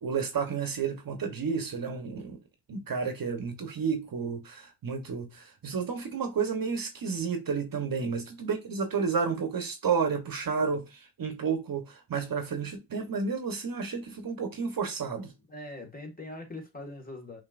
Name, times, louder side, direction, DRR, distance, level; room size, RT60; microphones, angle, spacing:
voice 1, 0.0-2.4 2.7-15.3, right 5 dB, 50° right, 1.0 m, -31 dB
voice 2, 15.5-17.4, left 2 dB, 20° left, 1.7 m, -42 dB
5.5 x 3.0 x 2.5 m
cardioid pair, 75°, 46 cm